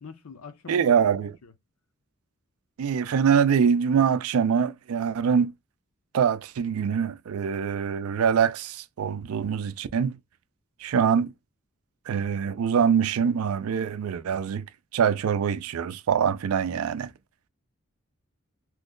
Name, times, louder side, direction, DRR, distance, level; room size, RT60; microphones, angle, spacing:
voice 1, 0.0-1.5, left 5 dB, 80° left, 0.6 m, -45 dB
voice 2, 0.7-1.3 2.8-5.5 6.1-10.2 10.8-11.3 12.1-14.7 14.9-17.1, right 7 dB, 75° right, 0.4 m, -24 dB
3.0 x 2.1 x 3.6 m
head